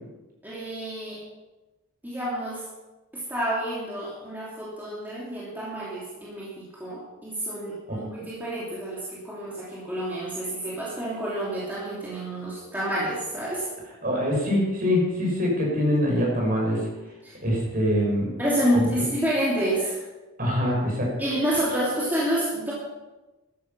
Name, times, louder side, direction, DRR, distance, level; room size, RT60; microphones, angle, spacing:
voice 1, 0.4-1.2 2.0-2.6 3.1-13.7 17.2-17.3 18.4-20.0 21.2-22.7, right 1 dB, 10° right, -8 dB, 3.0 m, -28 dB
voice 2, 14.0-16.9 17.4-18.3 20.4-21.1, equal, 40° right, -2 dB, 5.9 m, -24 dB
13.0 x 11.0 x 5.8 m, 1.1 s
head